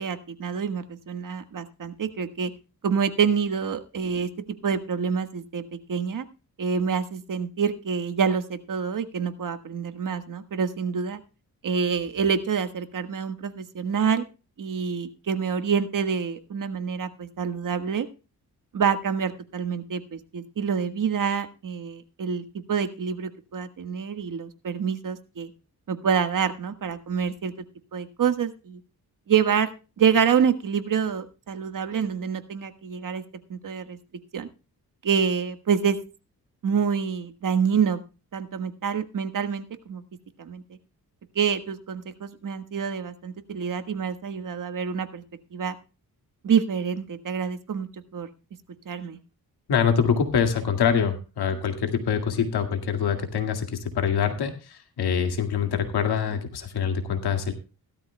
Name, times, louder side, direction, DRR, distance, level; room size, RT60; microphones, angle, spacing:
voice 1, 0.0-2.5 2.8-4.3 4.6-5.6 5.9-6.2 6.6-11.2 11.6-14.2 14.6-18.1 18.7-25.5 25.9-27.5 27.9-28.8 29.3-29.7 30.0-33.2 33.5-34.0 34.3-34.5 35.0-36.0 36.6-38.0 38.3-40.0 40.4-40.6 41.3-45.2 45.5-45.8 46.4-48.3 48.8-49.2, right 6 dB, 55° right, 9 dB, 1.5 m, -27 dB
voice 2, 49.7-57.5, left 7 dB, 85° left, 6 dB, 2.1 m, -25 dB
17.0 x 12.5 x 2.2 m, 0.32 s
cardioid pair, 110°, 38 cm